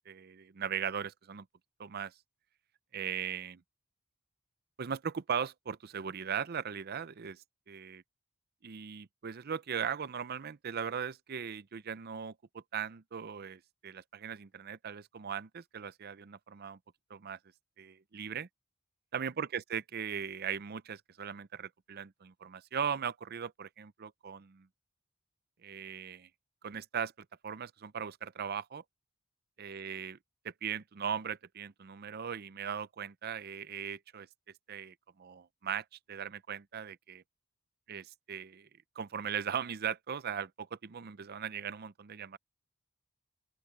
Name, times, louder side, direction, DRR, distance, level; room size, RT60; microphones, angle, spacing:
voice 1, 0.1-1.5 1.8-2.1 2.9-3.6 4.8-8.0 8.6-16.8 17.1-17.4 17.8-18.5 19.1-24.7 25.6-26.3 26.6-27.1 27.4-28.8 29.6-30.2 30.4-34.3 34.7-37.2 37.9-38.7 39.0-42.4, right 7 dB, 45° right, 0.5 m, -39 dB
open air
head